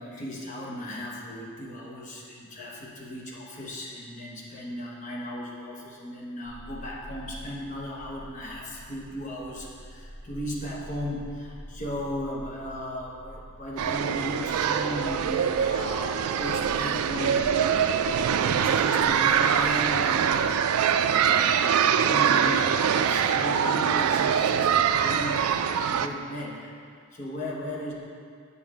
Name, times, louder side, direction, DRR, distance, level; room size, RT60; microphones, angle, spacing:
voice 1, 0.0-26.7 27.1-27.9, left 1 dB, 35° left, -3 dB, 1.0 m, -36 dB
sound 1, 6.4-20.4, equal, 15° right, 1.5 m, -47 dB
sound 2, 13.8-26.1, right 8 dB, 85° right, 0.3 m, -23 dB
7.2 x 4.2 x 6.1 m, 2.2 s
head